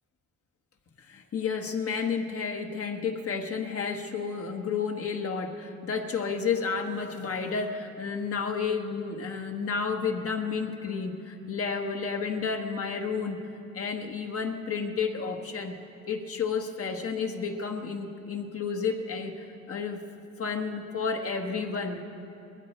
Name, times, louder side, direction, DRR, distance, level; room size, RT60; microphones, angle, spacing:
voice 1, 1.0-13.4 13.7-15.8 16.1-20.0 20.4-22.0, left 5 dB, 50° left, 4 dB, 1.5 m, -31 dB
20.5 x 16.0 x 4.4 m, 2.8 s
cardioid pair, 90°, 30 cm